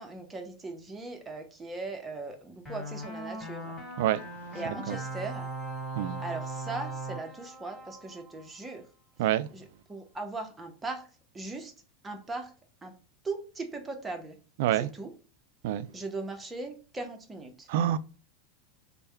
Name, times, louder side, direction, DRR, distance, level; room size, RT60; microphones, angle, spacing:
voice 1, 0.0-3.8 4.5-5.5 6.2-8.9 9.5-11.1 11.3-11.7 12.0-12.5 12.8-12.9 13.2-14.3 14.7-15.1 15.9-17.7, right 3 dB, 15° right, 0.8 m, -39 dB
sound 1, 2.7-8.8, right 2 dB, 15° left, 2.1 m, -39 dB
voice 2, 14.6-14.9 15.6-15.9 17.7-18.0, right 12 dB, 70° right, 0.3 m, -26 dB
3.3 x 2.2 x 4.3 m
hypercardioid pair, 110°, 0 cm